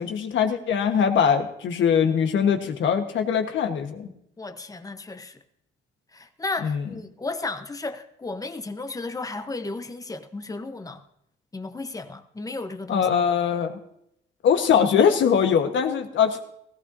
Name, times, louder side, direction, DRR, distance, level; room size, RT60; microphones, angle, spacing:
voice 1, 0.0-4.1 6.6-6.8 12.9-13.8 14.4-16.4, left 7 dB, 70° left, 1.4 m, -22 dB
voice 2, 4.4-5.4 6.1-11.0 11.5-13.1, left 3 dB, 15° left, 1.0 m, -34 dB
17.0 x 15.5 x 2.8 m
cardioid pair, 90°, 20 cm